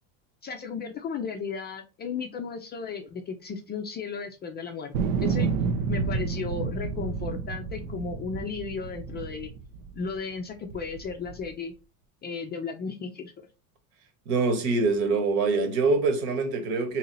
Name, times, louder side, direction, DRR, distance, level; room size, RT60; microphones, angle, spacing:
voice 1, 0.4-5.5 5.9-9.5 9.9-11.7 12.2-13.5, left 5 dB, 25° left, 0.4 m, -35 dB
sound 1, 4.9-10.2 10.7-11.5, right 5 dB, 80° right, 0.7 m, -30 dB
voice 2, 14.3-17.0, right 3 dB, 60° right, 1.3 m, -24 dB
3.1 x 2.8 x 3.9 m
supercardioid pair, 100°, 44 cm